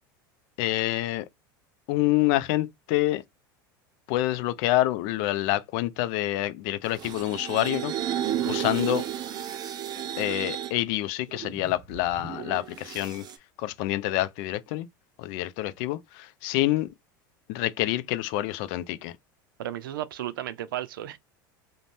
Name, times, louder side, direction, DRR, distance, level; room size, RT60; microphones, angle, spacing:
voice 1, 0.6-1.3 1.9-3.2 4.1-9.1 10.2-13.2 13.6-14.9 15.2-16.9 17.5-19.1, left 15 dB, 60° left, 0.4 m, -27 dB
sound 1, 6.8-10.7 11.3-13.4, right 11 dB, 40° right, 0.6 m, -33 dB
voice 2, 19.6-21.2, right 12 dB, 80° right, 0.4 m, -34 dB
2.6 x 2.1 x 3.2 m
hypercardioid pair, 90°, 11 cm